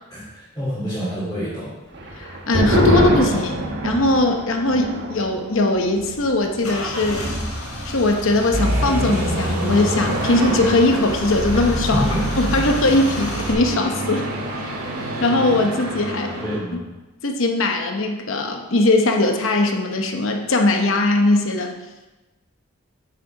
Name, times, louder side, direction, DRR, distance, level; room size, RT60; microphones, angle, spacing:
voice 1, 0.1-1.7 11.9-12.2 16.4-16.8, equal, 15° left, -12 dB, 3.3 m, -27 dB
sound 1, 1.9-8.9 9.2-9.3 9.6-10.1, equal, 50° right, 1.2 m, -26 dB
voice 2, 2.2-3.6 3.8-7.2 7.8-12.1 12.4-14.3 14.6-14.7 15.2-16.4 17.2-21.7, left 2 dB, 65° left, 3 dB, 0.9 m, -20 dB
Car / Engine starting / Idling, 5.7-13.5, equal, 85° left, 3.2 m, -30 dB
sound 2, 8.5-16.6, right 1 dB, 90° right, 1.8 m, -26 dB
8.8 x 6.7 x 4.9 m, 1.1 s
head